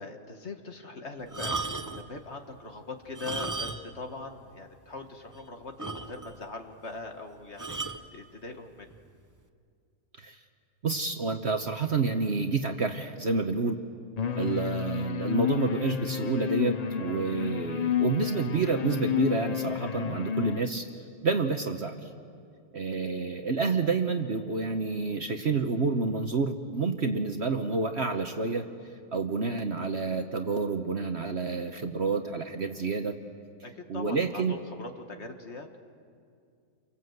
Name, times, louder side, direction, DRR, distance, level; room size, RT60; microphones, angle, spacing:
voice 1, 0.0-8.9 33.6-35.7, left 3 dB, 40° left, 5 dB, 1.7 m, -41 dB
sound 1, 1.3-2.1 3.1-4.1 4.3-4.4 5.0-5.1 5.3-5.4 5.8-6.4 7.6-8.1 8.9-9.1, right 3 dB, 25° right, 0.4 m, -35 dB
voice 2, 10.8-13.8 14.4-20.9 21.2-22.1 22.7-28.7 29.1-33.2 33.9-34.6, right 4 dB, 45° right, 6 dB, 1.1 m, -29 dB
sound 2, 14.2-20.6, left 9 dB, 60° left, 0.4 m, -31 dB
29.5 x 24.0 x 7.9 m, 2.3 s
omnidirectional pair, 1.8 m